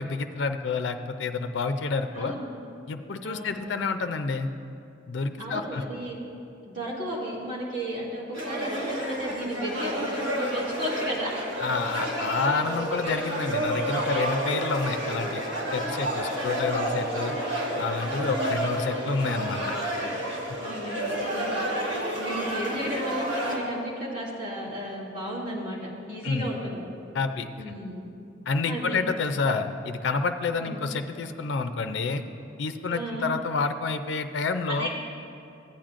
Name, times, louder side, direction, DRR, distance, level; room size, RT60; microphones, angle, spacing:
voice 1, 0.0-2.3 2.9-4.5 5.1-5.8 11.6-15.4 15.7-17.3 17.8-19.8 26.2-26.5 27.1-27.5 28.5-32.2 32.6-34.9, left 4 dB, 60° left, 8 dB, 0.4 m, -29 dB
voice 2, 2.1-2.5 3.2-3.6 5.4-6.2 6.6-11.4 14.1-14.2 16.4-16.7 18.2-18.6 20.6-26.8 27.6-28.1 28.6-29.0 30.6-30.8 32.9-33.3 34.7-34.9, equal, 40° right, -7 dB, 2.5 m, -34 dB
sound 1, 8.3-23.6, right 1 dB, 65° right, 1.7 m, -30 dB
15.0 x 8.8 x 2.5 m, 2.6 s
head